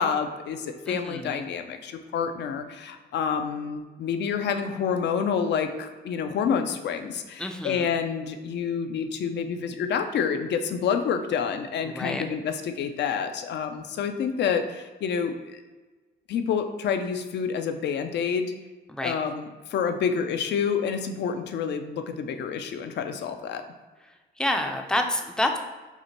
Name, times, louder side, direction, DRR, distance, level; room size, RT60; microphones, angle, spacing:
voice 1, 0.0-15.6 16.3-18.5 19.0-23.6, left 6 dB, 60° left, 8 dB, 0.4 m, -28 dB
voice 2, 0.9-1.4 7.4-7.9 11.8-12.2 18.9-19.1 24.4-25.6, left 1 dB, 5° left, 4 dB, 0.4 m, -28 dB
5.6 x 2.1 x 2.9 m, 1.2 s
cardioid pair, 90°, 20 cm